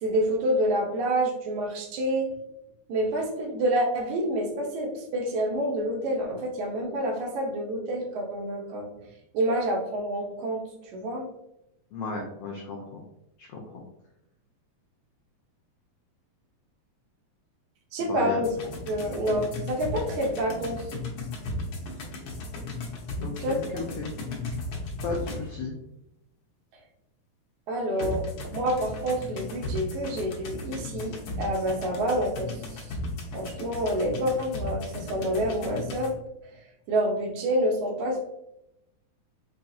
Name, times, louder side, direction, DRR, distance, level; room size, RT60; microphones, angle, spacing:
voice 1, 0.0-2.4 2.9-8.9 9.3-11.2 17.9-18.5 18.9-20.8 23.4-23.8 27.7-28.2 28.5-32.9 33.3-36.2 36.9-38.3, right 1 dB, 80° right, 1 dB, 2.2 m, -28 dB
voice 2, 11.9-13.0 13.4-13.8 18.0-18.4 23.2-24.1 25.0-25.8 28.0-28.1, left 3 dB, 85° left, -1 dB, 1.3 m, -34 dB
sound 1, 18.4-25.7 28.0-36.1, left 2 dB, 65° left, 1.7 m, -36 dB
5.6 x 2.3 x 2.7 m, 0.84 s
omnidirectional pair, 3.3 m